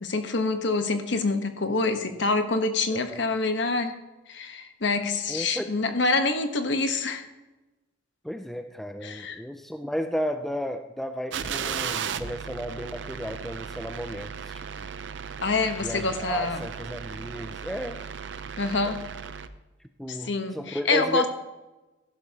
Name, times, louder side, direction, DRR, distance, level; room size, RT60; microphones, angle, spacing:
voice 1, 0.0-4.0 4.3-7.2 9.0-9.4 15.4-16.6 18.6-19.0 20.1-21.3, left 3 dB, 60° left, 7 dB, 1.1 m, -26 dB
voice 2, 2.9-3.2 5.3-5.6 8.2-14.9 15.8-18.0 18.8-18.9 20.0-21.3, equal, ahead, 7 dB, 0.4 m, -33 dB
sound 1, 11.3-19.5, right 7 dB, 60° right, 0.5 m, -36 dB
15.0 x 12.0 x 2.9 m, 1.1 s
head